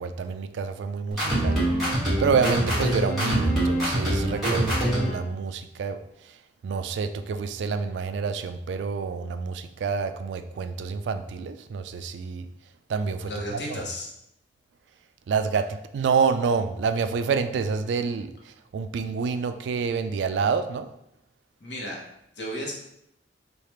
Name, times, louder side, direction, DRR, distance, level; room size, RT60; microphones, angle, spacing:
voice 1, 0.0-1.6 2.2-6.0 6.6-12.5 12.9-13.8 15.3-20.9, right 5 dB, 80° right, 9 dB, 0.3 m, -28 dB
sound 1, 1.1-5.2, right 1 dB, ahead, 1.4 m, -24 dB
voice 2, 13.2-14.1 21.6-22.0 22.4-22.8, equal, 75° left, -3 dB, 1.0 m, -33 dB
3.3 x 2.4 x 4.3 m, 0.80 s
head